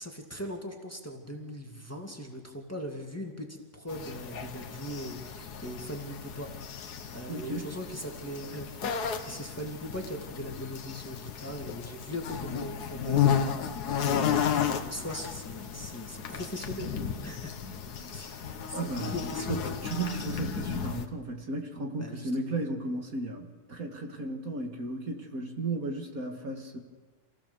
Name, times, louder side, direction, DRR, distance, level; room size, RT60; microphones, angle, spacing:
voice 1, 0.0-6.5 6.9-8.9 9.2-17.5 18.1-19.8 22.0-22.6, equal, 10° left, 1 dB, 2.3 m, -40 dB
sound 1, 3.9-21.0, left 8 dB, 75° left, 1.7 m, -33 dB
voice 2, 7.3-7.7 18.7-19.2 19.5-26.8, right 2 dB, 60° right, 3 dB, 2.3 m, -35 dB
28.0 x 16.0 x 7.0 m, 1.4 s
omnidirectional pair, 1.7 m